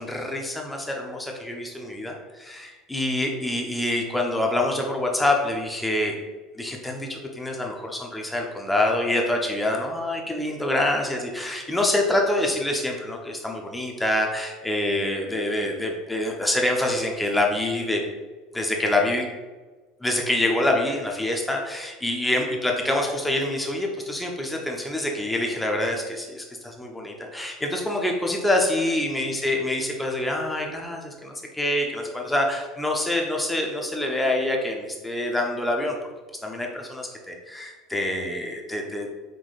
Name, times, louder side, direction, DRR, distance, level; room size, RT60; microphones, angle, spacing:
voice 1, 0.0-6.2 6.6-18.0 18.5-19.3 20.0-35.9 36.4-39.1, left 1 dB, 10° left, 1 dB, 0.9 m, -26 dB
5.0 x 3.6 x 2.5 m, 1.3 s
hypercardioid pair, 75°, 0 cm